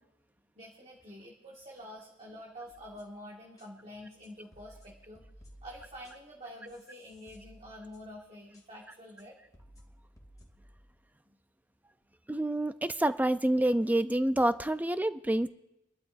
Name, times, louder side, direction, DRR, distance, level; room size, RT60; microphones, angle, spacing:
voice 1, 0.6-5.2 5.6-9.4, equal, 30° right, -3 dB, 1.9 m, -47 dB
sound 1, 2.7-3.2 3.6-3.7 4.2-6.4 6.7-8.2 8.5-8.6 9.2-9.3 9.5-10.9, equal, 20° left, 2.6 m, -57 dB
voice 2, 12.3-15.5, right 1 dB, 10° right, 12 dB, 0.4 m, -27 dB
26.0 x 12.0 x 2.6 m, 0.92 s
head